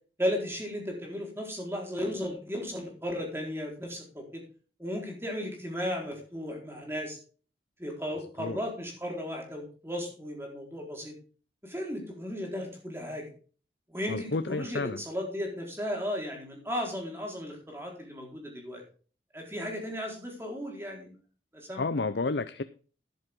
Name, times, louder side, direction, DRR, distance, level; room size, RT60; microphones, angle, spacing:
voice 1, 0.2-4.4 4.8-7.2 7.8-11.1 11.6-13.3 13.9-18.8 19.3-21.2 21.5-21.9, equal, 15° right, 0 dB, 4.4 m, -35 dB
voice 2, 14.1-15.0 21.8-22.6, left 3 dB, 70° left, 12 dB, 0.6 m, -31 dB
12.5 x 10.5 x 3.7 m, 0.39 s
head